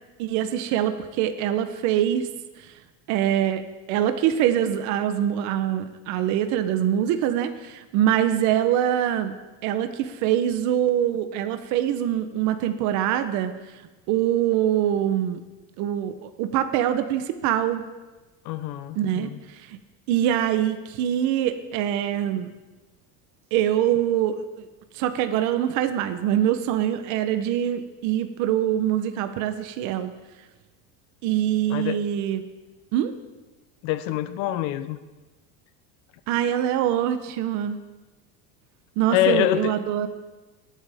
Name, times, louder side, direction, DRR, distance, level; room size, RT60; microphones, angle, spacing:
voice 1, 0.2-2.3 2.6-2.7 3.1-3.6 3.9-9.3 9.6-13.5 14.1-15.4 15.8-17.8 19.0-19.8 20.1-22.5 23.5-24.7 24.9-30.1 31.2-32.4 32.9-33.1 36.3-37.8 39.0-40.1, right 11 dB, 45° right, 9 dB, 0.7 m, -24 dB
voice 2, 18.5-19.4 31.7-32.0 33.8-35.0 39.1-39.8, left 12 dB, 50° left, 13 dB, 0.6 m, -25 dB
22.0 x 9.0 x 3.4 m, 1.2 s
cardioid pair, 180°, 41 cm